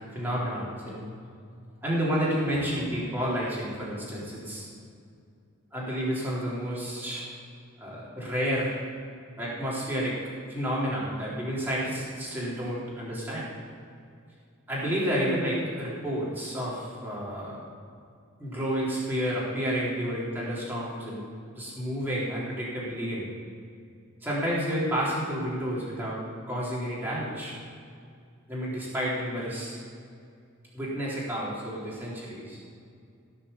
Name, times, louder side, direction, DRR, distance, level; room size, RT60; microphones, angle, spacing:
voice 1, 0.1-1.1 1.8-4.7 5.7-7.3 7.8-8.8 9.4-10.2 10.5-13.5 14.7-17.6 18.4-21.3 21.6-23.3 24.2-27.5 28.5-29.8 30.7-32.6, equal, 10° right, -7 dB, 3.8 m, -30 dB
17.0 x 6.9 x 7.1 m, 2.4 s
head